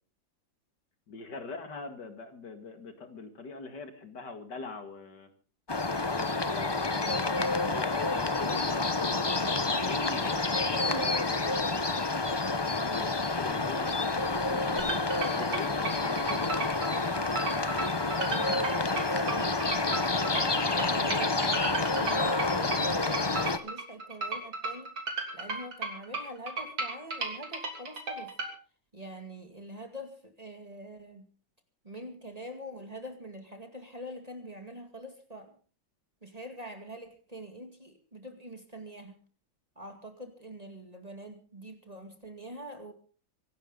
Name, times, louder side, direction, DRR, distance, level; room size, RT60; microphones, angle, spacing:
voice 1, 1.1-5.3 6.1-8.6 9.6-10.5 10.7-12.2 12.8-15.0 15.3-16.5, left 3 dB, 60° left, 7 dB, 2.7 m, -43 dB
sound 1, 5.7-23.6, left 3 dB, 30° left, 0.4 m, -29 dB
sound 2, 14.8-28.5, right 3 dB, 80° right, 3.9 m, -35 dB
voice 2, 18.2-19.6 19.9-24.9 25.3-28.3 28.9-31.3 31.8-35.6 36.2-39.2 39.8-42.9, right 1 dB, 20° right, 5 dB, 2.3 m, -44 dB
25.0 x 12.0 x 3.8 m, 0.39 s
omnidirectional pair, 2.1 m